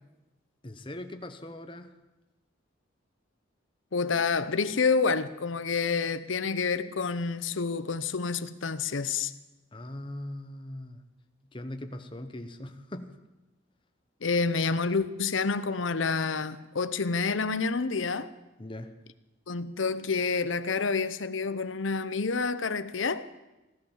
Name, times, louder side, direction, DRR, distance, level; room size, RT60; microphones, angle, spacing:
voice 1, 0.6-1.9 9.7-11.0 11.5-13.1 18.6-18.9, left 1 dB, 25° left, 1.0 m, -40 dB
voice 2, 3.9-9.3 14.2-18.3 19.5-23.2, left 4 dB, 80° left, 0.8 m, -28 dB
16.0 x 12.5 x 7.3 m
head